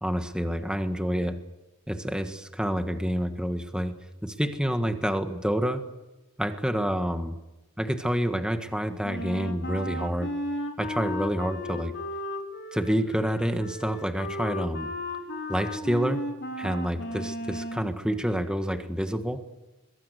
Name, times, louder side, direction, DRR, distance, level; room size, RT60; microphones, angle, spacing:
voice 1, 0.0-1.4 1.9-3.9 4.2-5.9 6.4-7.4 7.8-10.3 10.8-12.0 12.7-14.9 15.5-16.2 16.6-19.5, equal, 5° right, 7 dB, 1.6 m, -28 dB
Wind instrument woodwind instrument, 9.0-17.9, left 1 dB, 55° left, 4.1 m, -35 dB
22.5 x 22.5 x 8.3 m, 1.0 s
head